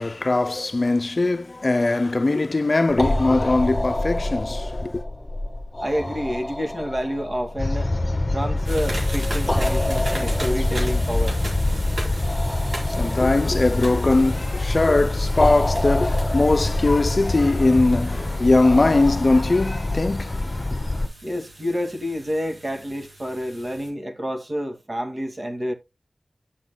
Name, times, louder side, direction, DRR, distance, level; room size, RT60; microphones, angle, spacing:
voice 1, 0.0-5.0 12.4-12.5 12.9-20.6, left 2 dB, 50° left, 0.6 m, -21 dB
sound 1, 2.9-21.1, left 1 dB, 10° left, 1.4 m, -29 dB
voice 2, 5.8-7.9 8.3-11.4 21.2-25.7, equal, 40° right, 2.1 m, -28 dB
sound 2, 7.6-21.1, left 2 dB, 30° left, 1.5 m, -25 dB
sound 3, 8.6-23.9, right 1 dB, 75° right, 4.4 m, -39 dB
11.0 x 7.8 x 2.2 m
wide cardioid pair, 60°, 0 cm